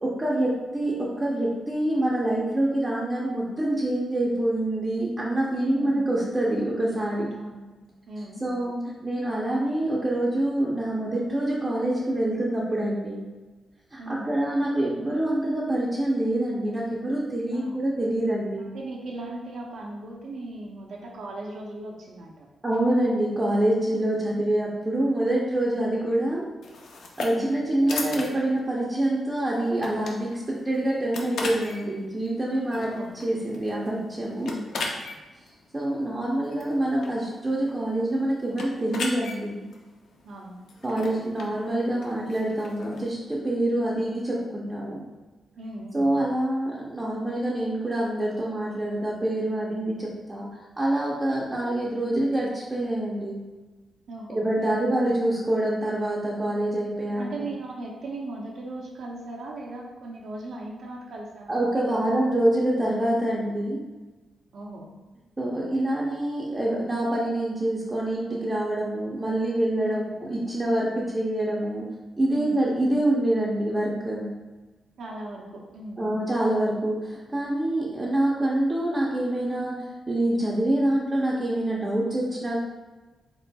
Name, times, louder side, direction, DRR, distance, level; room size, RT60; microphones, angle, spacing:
voice 1, 0.0-7.3 8.4-13.3 13.9-18.7 22.6-26.5 27.2-34.5 35.7-39.6 40.8-45.0 45.9-53.4 54.3-57.5 61.5-63.8 65.4-71.9 72.2-74.3 76.0-82.6, right 1 dB, 15° right, -5 dB, 0.5 m, -26 dB
voice 2, 7.3-7.7 8.1-8.4 14.0-14.3 17.5-17.8 18.6-22.5 27.3-27.6 32.7-33.1 34.4-34.8 40.2-40.6 45.6-46.0 54.1-54.9 57.2-62.4 64.5-64.9 69.8-70.1 72.3-72.6 75.0-76.0, right 2 dB, 70° right, -2 dB, 0.6 m, -38 dB
sound 1, 26.6-43.1, left 3 dB, 75° left, 0.6 m, -39 dB
4.2 x 4.0 x 2.2 m, 1.2 s
wide cardioid pair, 170°, 0 cm